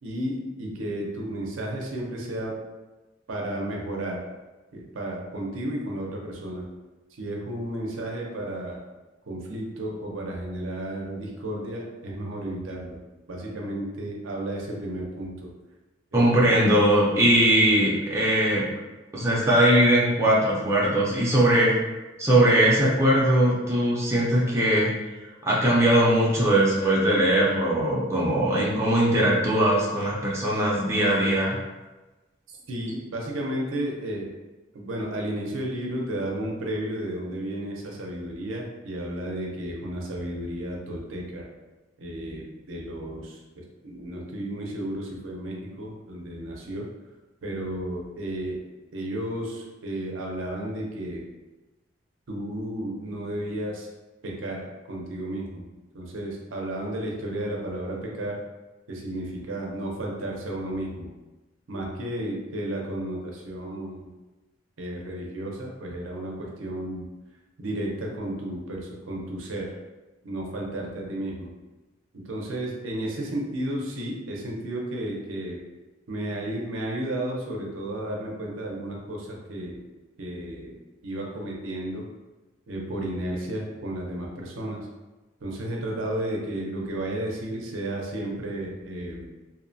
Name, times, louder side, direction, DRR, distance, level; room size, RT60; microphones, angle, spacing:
voice 1, 0.0-2.5 3.3-4.2 4.7-6.7 7.2-8.8 9.3-13.0 13.3-15.5 16.1-16.5 32.7-34.3 34.7-41.5 42.0-43.4 43.8-46.9 47.4-48.6 48.9-51.2 52.3-53.9 54.2-55.7 55.9-58.4 58.9-61.1 61.7-64.1 64.8-67.1 67.6-69.7 70.2-71.5 72.1-75.6 76.1-79.8 80.2-80.7 81.0-82.1 82.7-84.9 85.4-89.3, right 1 dB, 80° right, -1 dB, 0.6 m, -33 dB
voice 2, 16.1-18.7 19.1-21.7 22.2-24.9 25.4-31.6, right 1 dB, 15° right, -6 dB, 0.4 m, -20 dB
2.7 x 2.1 x 2.6 m, 1.1 s
head